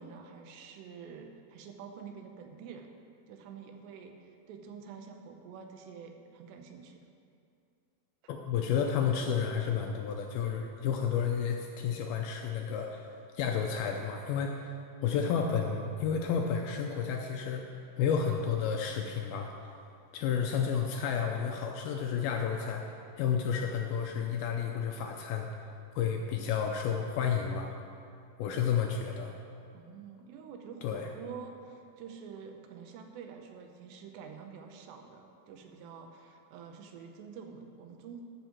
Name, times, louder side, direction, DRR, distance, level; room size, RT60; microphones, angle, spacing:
voice 1, 0.0-2.9 3.3-7.0 29.7-38.2, right 6 dB, 85° right, 4 dB, 3.1 m, -47 dB
voice 2, 8.3-14.7 15.0-17.7 18.0-19.5 20.1-22.8 23.2-25.5 26.0-27.7 28.4-29.3 30.8-31.1, left 7 dB, 80° left, 2 dB, 2.2 m, -31 dB
12.5 x 5.5 x 7.3 m, 2.5 s
omnidirectional pair, 4.9 m